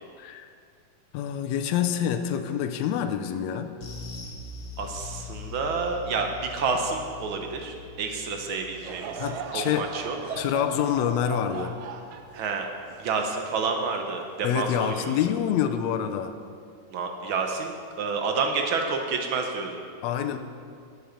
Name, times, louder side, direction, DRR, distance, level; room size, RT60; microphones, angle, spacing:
voice 1, 0.2-0.5 1.1-3.7 9.2-9.9 10.4-11.7 14.4-16.3 20.0-20.4, left 9 dB, 75° left, 7 dB, 1.8 m, -27 dB
sound 1, 3.8-12.5 12.8-13.0 13.4-13.5, left 5 dB, 55° left, 1.0 m, -43 dB
voice 2, 4.8-9.2 9.5-10.2 12.3-12.7 13.0-15.1 16.9-19.8, right 4 dB, 65° right, 3 dB, 1.3 m, -29 dB
Laughter / Crowd, 8.8-14.2 14.8-14.9 15.7-15.9, right 5 dB, 85° right, 2.1 m, -38 dB
12.0 x 9.3 x 5.2 m, 2.3 s
omnidirectional pair, 3.3 m